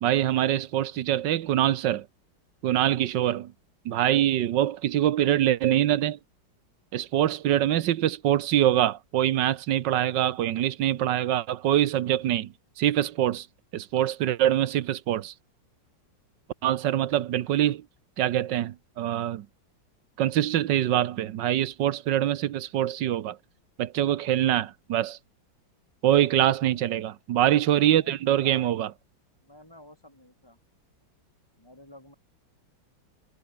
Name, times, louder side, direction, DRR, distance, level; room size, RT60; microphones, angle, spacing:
voice 1, 0.0-2.1 2.6-3.5 3.8-6.2 6.9-13.5 13.7-15.3 16.6-17.8 18.2-19.5 20.2-23.4 23.8-25.2 26.0-28.9, right 12 dB, 75° right, 1.5 m, -24 dB
voice 2, 26.6-27.0 27.8-28.7 29.4-30.6 31.6-32.2, left 1 dB, 10° left, 6.2 m, -50 dB
omnidirectional pair, 2.0 m